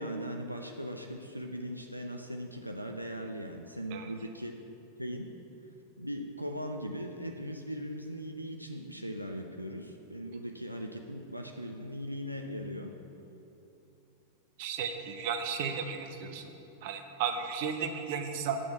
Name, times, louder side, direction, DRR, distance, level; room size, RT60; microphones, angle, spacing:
voice 1, 0.0-4.6 5.0-5.3 6.0-12.9, equal, 90° right, 3 dB, 0.5 m, -39 dB
voice 2, 14.6-16.5 16.8-18.6, right 6 dB, 50° right, 6 dB, 0.9 m, -34 dB
7.8 x 6.1 x 8.0 m, 2.8 s
figure-of-eight pair, 90°, 0 cm